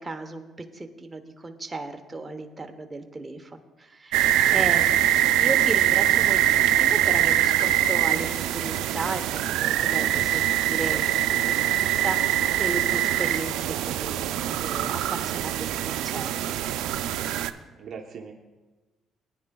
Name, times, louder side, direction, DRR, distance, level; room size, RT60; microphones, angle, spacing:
voice 1, 0.0-4.3 4.5-4.9 5.3-16.4, right 3 dB, 20° right, 5 dB, 0.9 m, -35 dB
sound 1, 4.1-17.5, right 12 dB, 90° right, 0.4 m, -23 dB
voice 2, 4.4-5.1 17.7-18.3, right 6 dB, 55° right, 0 dB, 0.9 m, -43 dB
19.0 x 9.8 x 2.3 m, 1.2 s
cardioid pair, 105°, 0 cm